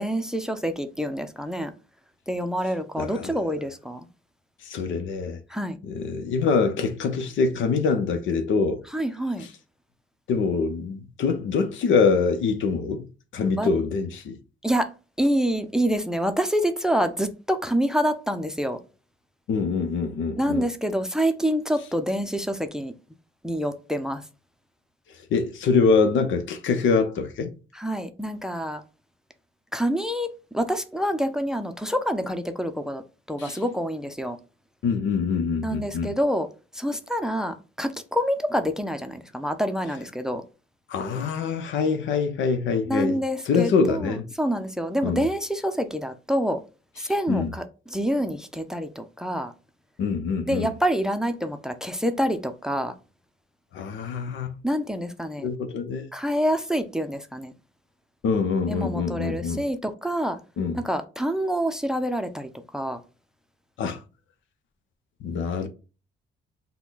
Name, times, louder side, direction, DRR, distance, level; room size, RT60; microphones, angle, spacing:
voice 1, 0.0-1.7 2.3-4.1 5.5-5.8 8.9-9.5 13.6-13.7 14.6-14.9 15.2-18.8 20.4-22.9 23.4-24.2 27.7-28.8 29.7-30.3 30.5-33.0 33.3-34.4 35.6-36.5 36.7-40.4 42.9-46.6 47.0-49.5 50.5-52.9 54.6-55.5 56.1-57.5 58.7-60.4 60.7-63.0, equal, 5° right, 0.6 m, -27 dB
voice 2, 3.0-3.4 4.6-5.4 5.8-8.8 9.4-9.5 10.3-13.1 13.3-14.4 19.5-20.7 25.3-27.5 33.4-33.6 34.8-36.2 40.9-44.3 45.0-45.3 47.0-47.5 50.0-50.7 53.7-54.5 55.4-56.1 58.2-59.6 60.6-60.8 63.8-64.0 65.2-65.7, left 5 dB, 75° left, 0.8 m, -24 dB
5.8 x 2.3 x 3.8 m
cardioid pair, 90°, 20 cm